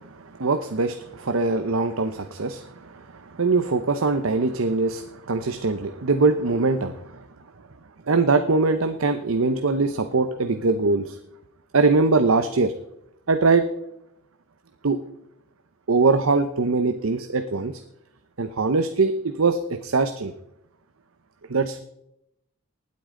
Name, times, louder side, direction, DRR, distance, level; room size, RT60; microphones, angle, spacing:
voice 1, 0.4-7.1 8.1-11.2 11.7-12.7 13.3-13.6 14.8-15.0 15.9-17.8 18.4-20.3 21.5-21.8, right 3 dB, 75° right, 9 dB, 0.8 m, -22 dB
19.0 x 8.5 x 3.8 m, 0.79 s
head